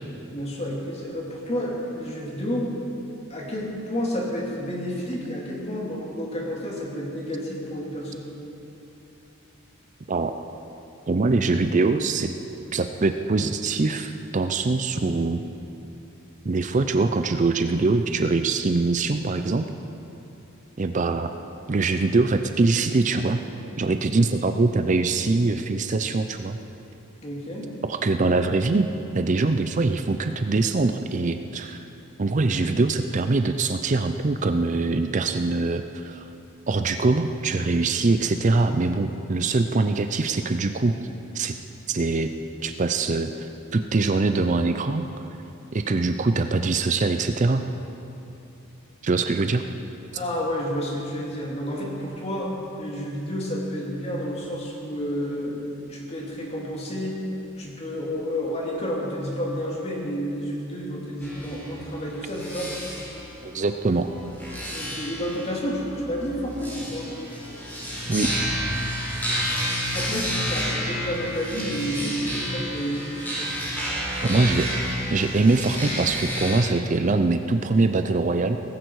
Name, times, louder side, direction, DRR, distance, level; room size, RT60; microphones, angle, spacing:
voice 1, 0.3-2.7 3.3-8.3 27.2-27.7 50.1-57.2 57.6-62.7 64.7-67.1 69.9-73.1, equal, 30° left, -3 dB, 2.7 m, -30 dB
voice 2, 11.1-12.3 12.7-15.4 16.4-19.7 20.8-21.3 21.7-23.4 23.8-26.6 27.9-28.9 29.1-31.8 32.2-36.3 36.7-41.0 41.3-41.6 41.9-42.3 42.6-45.1 45.7-47.6 49.0-49.6 63.4-64.1 68.1-68.3 74.2-74.7 75.1-78.6, right 3 dB, 35° right, 8 dB, 0.5 m, -23 dB
sound 1, 61.2-76.6, equal, 10° left, 4.4 m, -30 dB
18.0 x 15.5 x 4.7 m, 2.8 s
head